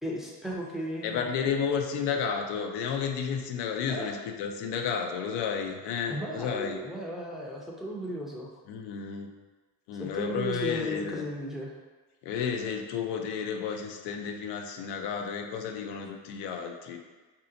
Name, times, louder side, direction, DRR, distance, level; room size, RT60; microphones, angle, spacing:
voice 1, 0.0-1.5 3.9-4.2 6.1-8.5 10.0-11.7, equal, ahead, -2 dB, 0.6 m, -35 dB
voice 2, 1.0-6.8 8.7-9.3 9.9-11.2 12.2-17.0, left 6 dB, 85° left, 4 dB, 0.5 m, -32 dB
3.2 x 2.8 x 3.8 m, 1.3 s
cardioid pair, 100°, 40 cm